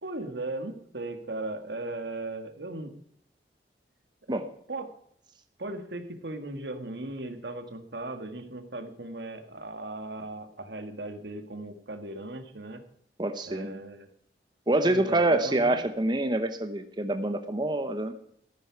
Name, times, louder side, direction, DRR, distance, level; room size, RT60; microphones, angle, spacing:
voice 1, 0.0-2.9 4.3-4.4 4.7-4.9 5.6-12.8 13.4-14.1 14.8-15.8, right 2 dB, 75° right, 8 dB, 1.7 m, -37 dB
voice 2, 13.2-13.8 14.7-18.1, right 1 dB, 25° right, 8 dB, 0.9 m, -26 dB
13.5 x 11.0 x 4.7 m, 0.68 s
head